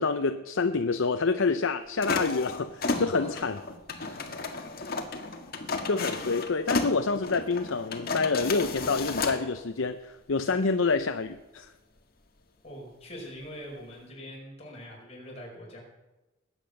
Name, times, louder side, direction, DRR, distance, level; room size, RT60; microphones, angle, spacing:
voice 1, 0.0-3.6 4.6-4.7 5.9-11.7, left 4 dB, 75° left, 8 dB, 0.7 m, -27 dB
sound 1, 2.0-9.4, left 3 dB, 50° left, 1.8 m, -33 dB
voice 2, 2.9-3.3 3.9-4.6 12.6-15.8, equal, 30° left, -2 dB, 5.1 m, -43 dB
20.0 x 8.9 x 6.6 m, 1.1 s
head